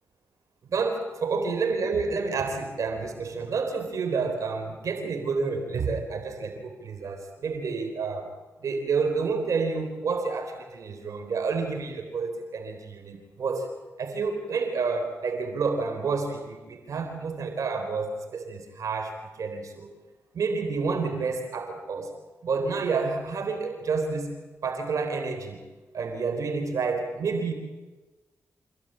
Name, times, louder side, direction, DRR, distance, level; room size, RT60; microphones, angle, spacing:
voice 1, 0.6-8.3 8.6-13.7 14.0-19.9 20.3-22.1 22.4-25.6 25.9-27.5, right 4 dB, 75° right, 5 dB, 3.9 m, -29 dB
27.0 x 16.0 x 9.0 m, 1.2 s
cardioid pair, 60°, 6 cm